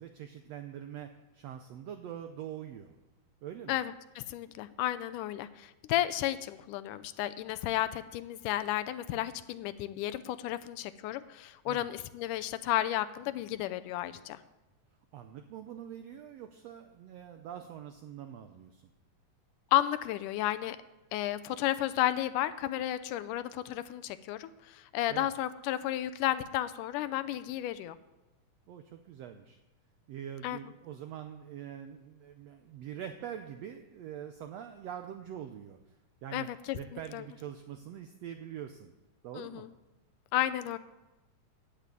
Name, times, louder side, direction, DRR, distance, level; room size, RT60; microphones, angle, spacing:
voice 1, 0.0-2.9 3.4-3.8 11.7-11.9 15.1-18.9 25.1-25.3 28.7-29.6 30.1-38.9 39.2-39.7, right 9 dB, 80° right, 7 dB, 1.5 m, -44 dB
voice 2, 3.7-14.4 19.7-20.8 21.1-28.0 30.4-30.6 36.3-37.2 39.4-39.7 40.3-40.8, left 13 dB, 80° left, 14 dB, 2.1 m, -33 dB
10.0 x 9.2 x 8.3 m, 1.0 s
omnidirectional pair, 3.8 m